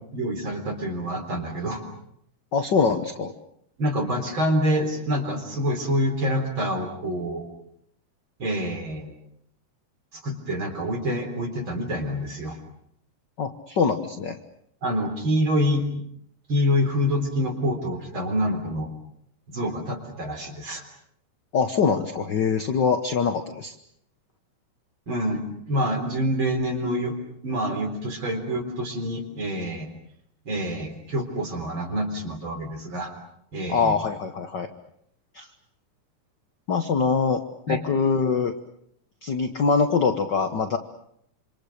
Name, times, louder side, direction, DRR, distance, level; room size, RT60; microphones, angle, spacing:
voice 1, 0.1-1.8 3.8-7.5 8.4-9.1 10.1-12.6 14.8-15.9 16.5-18.9 19.5-20.8 25.1-27.2 27.4-29.9 30.5-33.1 33.5-34.0 37.7-37.8, equal, 40° right, 4 dB, 4.5 m, -26 dB
voice 2, 2.5-3.3 13.4-14.4 21.5-23.7 33.7-34.7 35.3-35.5 36.7-38.5 39.2-40.8, left 5 dB, 50° left, 7 dB, 1.3 m, -23 dB
27.5 x 26.5 x 6.7 m, 0.71 s
omnidirectional pair, 3.5 m